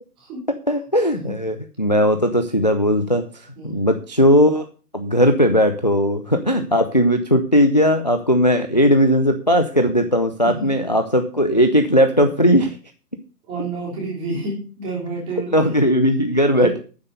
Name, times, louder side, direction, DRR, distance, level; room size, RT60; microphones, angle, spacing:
voice 1, 0.7-3.2 3.6-4.6 4.9-12.8 15.5-16.8, equal, 30° left, 7 dB, 0.5 m, -17 dB
voice 2, 10.4-10.7 13.5-15.7 16.5-16.8, right 3 dB, 10° right, -3 dB, 3.3 m, -29 dB
9.6 x 7.5 x 6.6 m, 0.37 s
hypercardioid pair, 165°, 48 cm